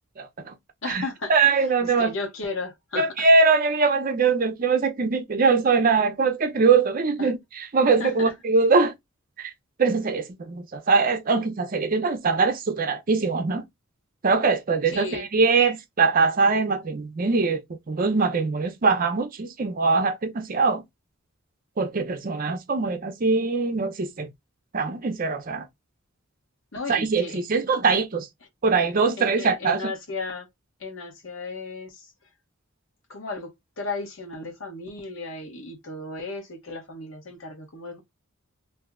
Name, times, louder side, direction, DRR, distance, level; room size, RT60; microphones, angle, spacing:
voice 1, 0.2-0.5 0.9-1.0 1.3-2.1 3.0-8.9 9.4-9.5 9.8-13.6 14.2-17.6 17.9-20.8 21.8-24.3 24.7-25.7 26.9-28.3 28.6-29.9, right 4 dB, 45° right, 0.5 m, -22 dB
voice 2, 0.8-3.3 7.2-7.3 8.0-8.3 14.9-15.2 26.7-27.4 29.2-30.5 30.8-32.1 33.1-38.0, left 3 dB, 65° left, 1.0 m, -35 dB
2.6 x 2.0 x 3.5 m
head